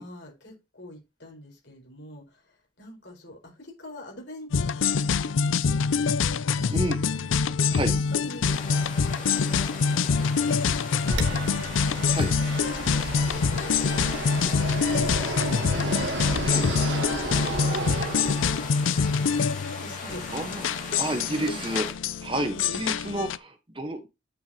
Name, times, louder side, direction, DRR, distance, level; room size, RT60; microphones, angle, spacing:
voice 1, 0.0-6.1 6.5-7.5 7.9-8.8 9.3-12.1 13.1-14.0 14.7-16.1 16.5-19.3 19.7-20.8 21.3-21.7 22.5-22.8, left 1 dB, 65° left, 4.5 m, -45 dB
sound 1, 4.5-23.4, left 5 dB, 85° left, 0.5 m, -25 dB
sound 2, 8.4-21.9, left 3 dB, 40° left, 2.9 m, -39 dB
Fixed-wing aircraft airplane, 11.1-18.9, right 2 dB, 70° right, 2.2 m, -33 dB
voice 2, 20.0-21.9 22.2-24.1, right 1 dB, 25° right, 1.1 m, -31 dB
9.7 x 6.4 x 2.9 m
head